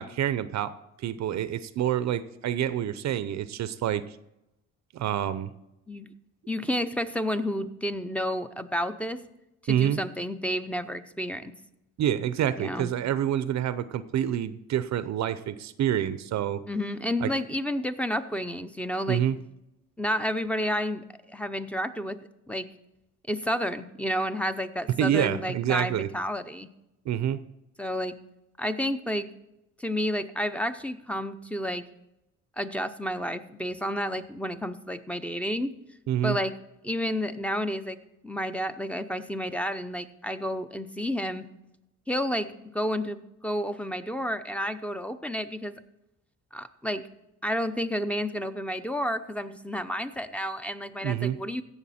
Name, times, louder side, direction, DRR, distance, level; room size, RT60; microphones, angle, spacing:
voice 1, 0.0-4.0 4.9-5.5 9.7-10.0 12.0-16.6 17.2-17.3 19.1-19.4 25.0-26.1 27.1-27.4 36.1-36.4 51.0-51.4, right 10 dB, 65° right, 14 dB, 0.6 m, -27 dB
voice 2, 6.5-9.2 9.6-11.5 12.6-12.9 16.7-19.2 20.0-22.2 22.5-22.7 23.3-26.7 27.8-28.1 28.6-29.3 29.8-31.8 32.6-35.7 36.2-36.5 36.8-38.0 38.2-41.4 42.1-45.8 46.5-47.1 47.4-51.6, equal, 5° left, 10 dB, 0.7 m, -30 dB
16.0 x 7.0 x 4.3 m, 0.88 s
cardioid pair, 90°, 30 cm